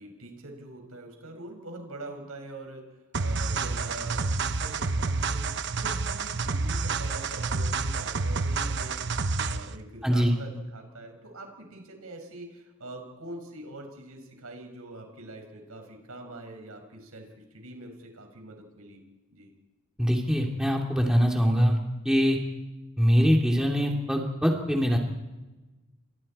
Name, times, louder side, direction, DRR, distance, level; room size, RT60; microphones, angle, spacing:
voice 1, 0.0-3.0 3.2-19.0 19.3-19.5, right 1 dB, 90° right, 3 dB, 5.8 m, -44 dB
sound 1, 3.1-9.7, right 4 dB, 55° right, 0.9 m, -29 dB
voice 2, 10.0-10.3 20.0-21.8 22.0-22.4 23.0-25.0, equal, 5° right, 0 dB, 2.8 m, -23 dB
30.0 x 24.5 x 4.4 m, 1.1 s
head